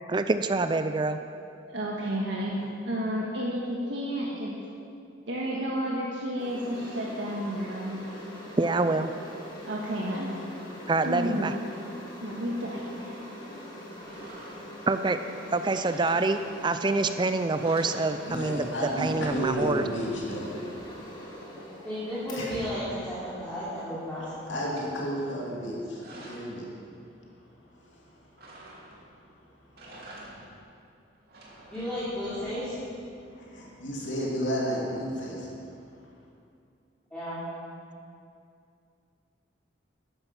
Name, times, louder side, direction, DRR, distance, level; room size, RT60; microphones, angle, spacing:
voice 1, 0.1-1.2 8.6-9.1 10.9-11.5 14.9-15.2 15.5-19.9, right 3 dB, 25° right, 9 dB, 0.4 m, -26 dB
voice 2, 1.7-4.5 5.3-8.0 9.6-10.4 11.0-11.5 12.2-13.3, equal, 70° right, -4 dB, 1.6 m, -31 dB
sound 1, 6.4-24.8, equal, 25° left, 2.6 m, -43 dB
sound 2, 14.0-14.9 15.6-16.8 17.2-17.3 17.6-18.6 18.9-20.2 21.9-23.6 24.0-25.0 25.6-26.6 28.4-29.2 29.6-30.7 31.1-32.9, right 1 dB, 55° right, 2.5 m, -49 dB
voice 3, 18.2-20.8 22.4-22.6 24.5-26.7 27.8-28.0 33.3-35.5, equal, 75° left, -3 dB, 2.8 m, -32 dB
voice 4, 21.8-24.6 25.0-25.6 31.7-32.8 37.1-37.4, equal, 5° left, -11 dB, 3.0 m, -34 dB
13.5 x 11.0 x 5.8 m, 2.5 s
head